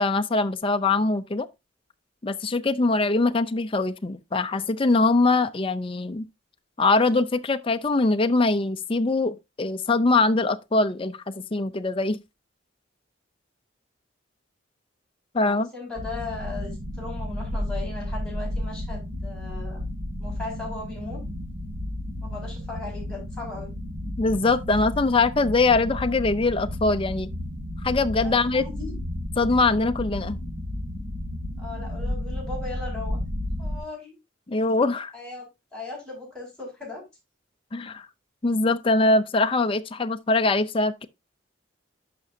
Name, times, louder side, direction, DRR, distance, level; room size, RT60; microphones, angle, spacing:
voice 1, 0.0-1.5 2.2-6.3 6.8-12.2 15.3-15.7 24.2-27.3 27.8-28.6 29.4-30.4 34.5-35.1 37.7-38.1 38.4-41.1, left 3 dB, 25° left, 0.5 m, -22 dB
voice 2, 15.4-19.8 20.2-21.2 22.2-23.7 28.2-28.9 31.6-33.2 33.6-34.1 35.1-35.5 35.7-37.0, left 3 dB, 5° left, 5.6 m, -37 dB
sound 1, 16.0-33.8, left 1 dB, 85° right, 2.1 m, -32 dB
11.0 x 6.0 x 2.7 m
head